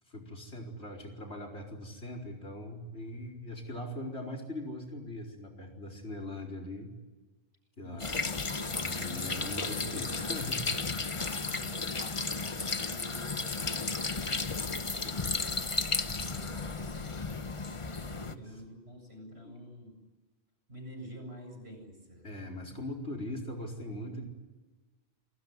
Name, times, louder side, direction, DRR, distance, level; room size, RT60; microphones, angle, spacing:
voice 1, 0.1-6.9 7.8-8.1 8.8-10.6 18.1-18.4 19.4-19.5 22.2-24.2, left 1 dB, 90° left, 1 dB, 5.0 m, -41 dB
voice 2, 7.8-10.2 11.1-11.9 12.3-14.6 14.9-17.4 17.9-20.0 20.7-22.3, equal, 75° right, 4 dB, 8.2 m, -49 dB
sound 1, 8.0-18.3, left 3 dB, 30° left, 1.0 m, -34 dB
28.5 x 19.5 x 9.9 m, 1.2 s
omnidirectional pair, 1.1 m